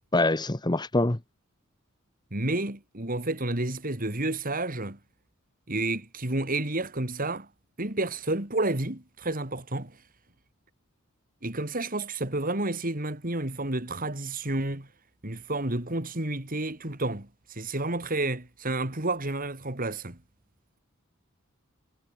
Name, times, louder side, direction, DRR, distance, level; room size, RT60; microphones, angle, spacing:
voice 1, 0.1-1.2, left 2 dB, 20° left, 1.0 m, -24 dB
voice 2, 2.3-5.0 5.7-7.5 7.8-10.0 11.4-14.9 15.2-20.2, right 2 dB, 40° right, 3.0 m, -30 dB
head